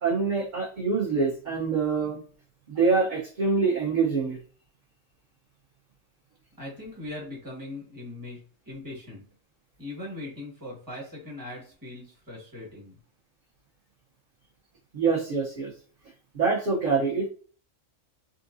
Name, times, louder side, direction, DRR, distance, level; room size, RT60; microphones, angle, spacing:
voice 1, 0.0-2.2 2.7-4.4 14.9-15.7 16.3-17.3, right 4 dB, 45° right, -5 dB, 0.7 m, -25 dB
voice 2, 6.6-9.2 9.8-13.0, left 2 dB, 15° right, -5 dB, 1.3 m, -40 dB
3.7 x 2.5 x 2.5 m, 0.43 s
omnidirectional pair, 1.4 m